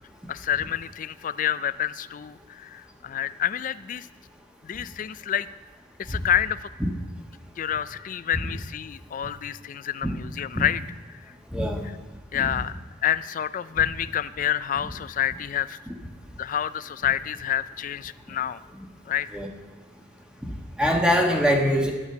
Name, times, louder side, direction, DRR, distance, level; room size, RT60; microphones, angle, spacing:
voice 1, 0.3-4.1 4.6-5.5 6.0-6.7 7.6-10.8 11.1-11.3 12.3-12.8 13.0-15.8 16.4-18.6 19.1-19.3, left 10 dB, 45° left, 15 dB, 0.3 m, -28 dB
voice 2, 11.5-11.9 12.3-12.5 19.3-19.5 20.5-21.9, equal, 5° right, 1 dB, 1.3 m, -23 dB
10.0 x 10.0 x 6.9 m, 1.3 s
head